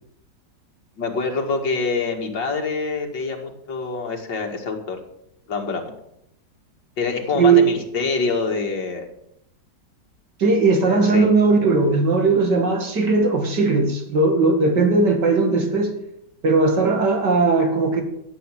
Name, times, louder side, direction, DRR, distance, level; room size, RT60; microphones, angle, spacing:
voice 1, 1.0-5.0 5.5-5.9 7.0-9.1 10.9-11.3, left 4 dB, 85° left, 2 dB, 2.9 m, -25 dB
voice 2, 7.3-7.7 10.4-15.9 16.4-18.0, right 3 dB, 70° right, 4 dB, 3.0 m, -18 dB
14.5 x 8.2 x 7.6 m, 0.76 s
omnidirectional pair, 1.9 m